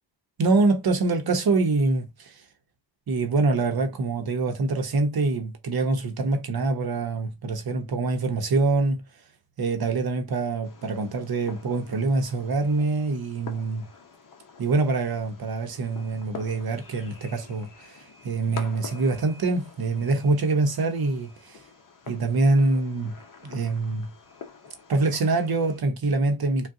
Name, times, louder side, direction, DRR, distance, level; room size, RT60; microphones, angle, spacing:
voice 1, 0.4-2.4 3.1-9.0 9.6-13.9 14.6-21.6 22.1-24.1 24.9-26.7, right 3 dB, 50° right, 0.8 m, -25 dB
Fireworks, 10.6-25.8, left 5 dB, 45° left, 0.7 m, -46 dB
3.6 x 2.3 x 2.6 m
wide cardioid pair, 120°, 46 cm